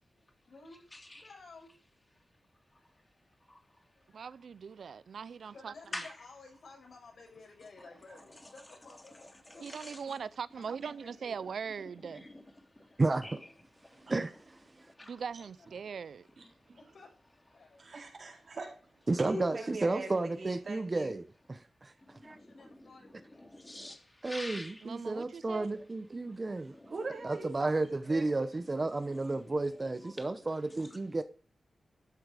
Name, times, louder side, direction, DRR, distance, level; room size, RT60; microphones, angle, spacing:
voice 1, 0.1-1.7 2.7-2.9 3.2-3.3 3.9-4.3 5.5-9.7 10.5-11.4 12.9-13.4 15.4-15.9 16.2-16.3 16.8-17.1 17.5-17.8 19.1-20.2 22.2-23.4, left 3 dB, 70° left, 7.3 m, -55 dB
voice 2, 0.9-1.2 3.5-3.6 5.9-6.1 9.5-10.0 12.1-12.4 12.8-12.9 13.2-13.3 13.8-14.0 14.8-15.2 22.1-24.8 26.7-26.9 29.0-29.4 30.0-30.3, left 1 dB, 15° left, 3.0 m, -46 dB
voice 3, 4.1-5.7 9.6-12.3 15.0-16.2 24.8-25.7, right 6 dB, 80° right, 0.5 m, -41 dB
voice 4, 13.0-13.4 14.1-14.6 19.1-21.9 22.2-22.4 24.2-26.7 27.2-31.2, right 2 dB, 30° right, 0.9 m, -32 dB
voice 5, 16.4-16.8 17.8-18.7 19.2-21.1 26.9-27.7 28.1-28.2, right 3 dB, 55° right, 4.6 m, -41 dB
13.0 x 7.9 x 5.0 m
wide cardioid pair, 105°, 0 cm